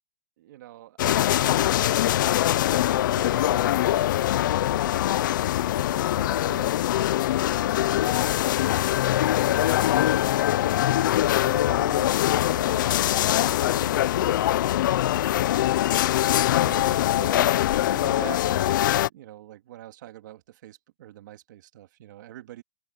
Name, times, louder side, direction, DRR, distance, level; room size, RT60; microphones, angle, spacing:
voice 1, 0.4-1.7 2.6-5.0 5.7-6.8 7.5-8.8 9.5-10.7 11.4-12.2 12.5-13.0 13.5-14.7 15.3-16.1 16.6-22.6, right 14 dB, 55° right, 2.3 m, -45 dB
sound 1, 1.0-19.1, left 13 dB, 60° left, 0.5 m, -23 dB
supercardioid pair, 170°, 12 cm